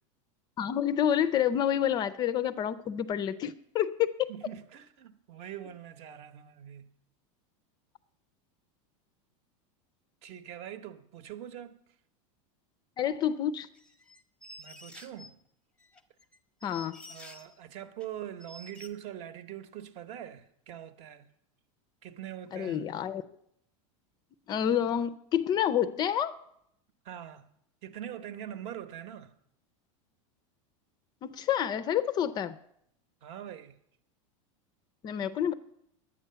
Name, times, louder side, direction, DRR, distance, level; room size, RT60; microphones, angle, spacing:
voice 1, 0.6-4.3 13.0-13.7 16.6-17.0 22.5-23.2 24.5-26.4 31.2-32.6 35.0-35.5, left 9 dB, 25° left, 0.4 m, -28 dB
voice 2, 4.3-6.9 10.2-11.8 14.6-15.4 17.1-21.3 22.0-22.8 27.0-27.5 27.8-29.3 33.2-33.8, right 11 dB, 40° right, 0.9 m, -43 dB
sound 1, 13.8-15.3 15.8-17.6 18.0-18.1 18.4-18.9, left 1 dB, 5° left, 0.8 m, -50 dB
11.0 x 8.6 x 6.8 m
supercardioid pair, 155°, 17 cm